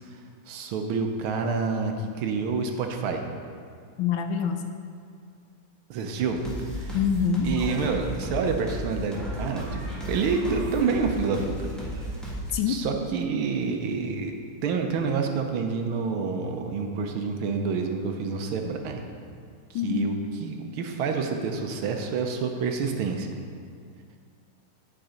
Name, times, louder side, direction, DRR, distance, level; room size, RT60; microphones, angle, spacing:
voice 1, 0.5-3.2 5.9-6.4 6.7-7.0 7.4-11.7 12.7-14.3 14.6-19.0 19.8-20.1 20.4-23.3, right 5 dB, 75° right, 4 dB, 1.6 m, -28 dB
voice 2, 4.0-4.7 6.9-7.5 12.5-12.8 19.7-20.1, left 7 dB, 75° left, 6 dB, 1.2 m, -25 dB
sound 1, 6.4-12.6, equal, ahead, 1.5 m, -34 dB
10.5 x 5.3 x 5.0 m, 2.2 s
omnidirectional pair, 2.4 m